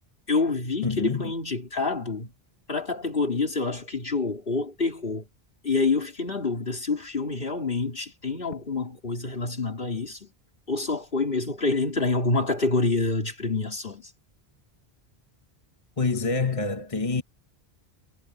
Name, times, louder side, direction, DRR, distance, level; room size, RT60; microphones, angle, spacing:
voice 1, 0.3-2.3 2.7-5.3 5.6-10.3 10.7-14.1, left 3 dB, 60° left, 3.7 m, -27 dB
voice 2, 0.8-1.3 16.0-17.2, left 4 dB, 35° left, 1.5 m, -26 dB
omnidirectional pair, 1.0 m